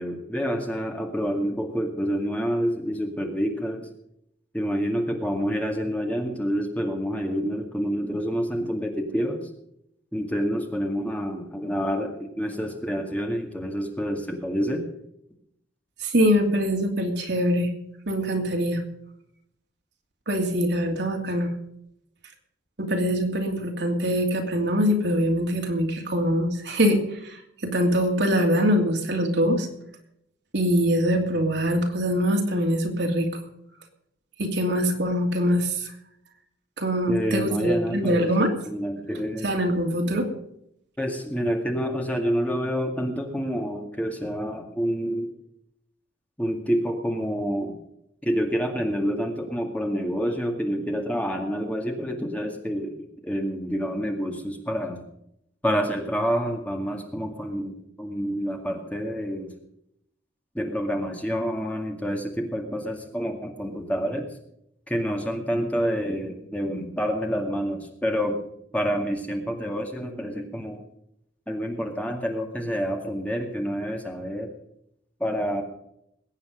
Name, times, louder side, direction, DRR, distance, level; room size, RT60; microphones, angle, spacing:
voice 1, 0.0-3.9 4.5-9.5 10.1-14.9 37.1-38.3 38.7-39.5 41.0-45.3 46.4-47.8 48.2-55.0 55.6-59.6 60.5-64.3 64.9-68.4 68.7-70.8 71.5-74.5 75.2-75.6, equal, 10° left, 2 dB, 2.2 m, -28 dB
voice 2, 16.0-17.7 18.1-18.8 20.3-21.5 22.8-27.4 27.6-29.7 30.5-33.3 34.4-35.9 36.8-38.5 39.4-40.3, equal, 65° right, 2 dB, 2.7 m, -23 dB
21.5 x 9.2 x 5.2 m, 0.77 s
head